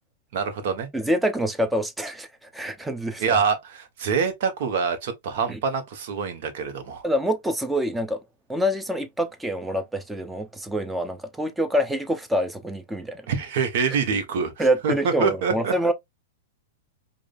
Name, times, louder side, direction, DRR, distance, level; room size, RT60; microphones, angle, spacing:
voice 1, 0.3-0.9 3.2-7.0 13.3-15.7, right 5 dB, 55° right, 1.2 m, -25 dB
voice 2, 0.9-2.3 2.5-3.2 5.5-5.6 7.0-8.2 8.5-13.2 14.6-15.9, equal, 5° right, 0.7 m, -26 dB
5.0 x 2.6 x 2.6 m
hypercardioid pair, 110°, 0 cm